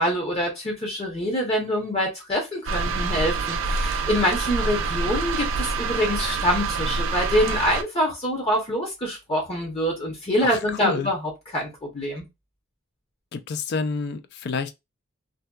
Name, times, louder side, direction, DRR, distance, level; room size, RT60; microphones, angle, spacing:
voice 1, 0.0-12.2, equal, 30° left, 0.7 m, -25 dB
sound 1, 2.7-7.8, right 4 dB, 75° right, 0.4 m, -26 dB
voice 2, 10.4-11.1 13.3-14.7, left 5 dB, 55° left, 0.4 m, -29 dB
2.7 x 2.1 x 2.2 m
head